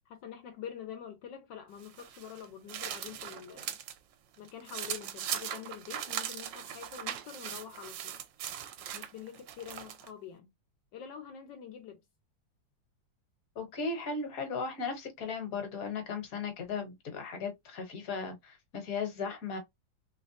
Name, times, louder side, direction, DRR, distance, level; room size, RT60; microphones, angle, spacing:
voice 1, 0.1-3.8 4.4-8.1 8.9-10.5 10.9-12.0, left 8 dB, 80° left, 1.4 m, -46 dB
sound 1, 1.8-4.0 4.3-10.1, right 10 dB, 85° right, 1.4 m, -40 dB
voice 2, 13.5-19.6, left 4 dB, 50° left, 1.5 m, -36 dB
3.3 x 3.1 x 2.8 m
omnidirectional pair, 2.0 m